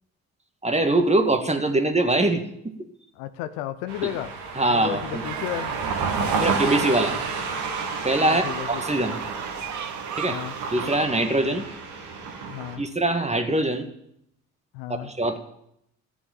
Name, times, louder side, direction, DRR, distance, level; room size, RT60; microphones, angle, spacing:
voice 1, 0.6-2.7 4.6-5.2 6.4-7.2 8.0-9.2 10.2-10.4 10.7-11.6 12.8-13.9 15.0-15.4, right 2 dB, 15° right, 6 dB, 2.0 m, -23 dB
voice 2, 3.2-4.3 4.7-5.7 6.9-7.2 8.3-8.8 10.3-10.6 12.5-12.8 14.7-15.1, left 12 dB, 70° left, 12 dB, 0.8 m, -33 dB
sound 1, 3.9-12.8, right 5 dB, 65° right, 2.5 m, -30 dB
sound 2, 5.2-11.0, right 9 dB, 45° right, 0.9 m, -38 dB
14.5 x 7.0 x 8.9 m, 0.76 s
hypercardioid pair, 50°, 42 cm